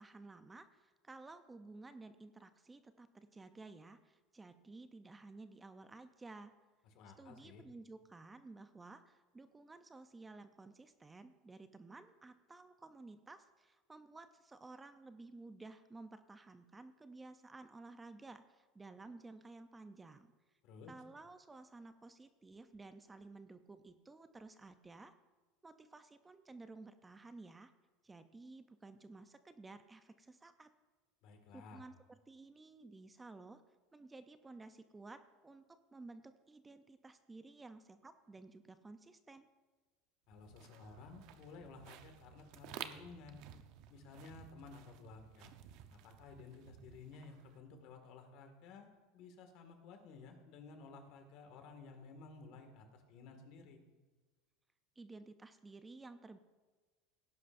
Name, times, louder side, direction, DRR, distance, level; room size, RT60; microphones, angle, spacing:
voice 1, 0.0-6.5 7.2-20.3 20.9-25.1 25.6-27.7 28.0-30.7 31.5-33.6 33.9-39.5 55.0-56.4, right 3 dB, 15° right, 10 dB, 0.6 m, -54 dB
voice 2, 6.9-7.6 20.6-20.9 31.2-31.8 40.3-43.4 43.9-45.5 45.9-48.9 49.1-53.8, left 4 dB, 60° left, 5 dB, 2.0 m, -55 dB
sound 1, 40.3-47.6, right 10 dB, 60° right, 0.8 m, -54 dB
17.0 x 10.5 x 2.6 m, 1.3 s
supercardioid pair, 120°, 0 cm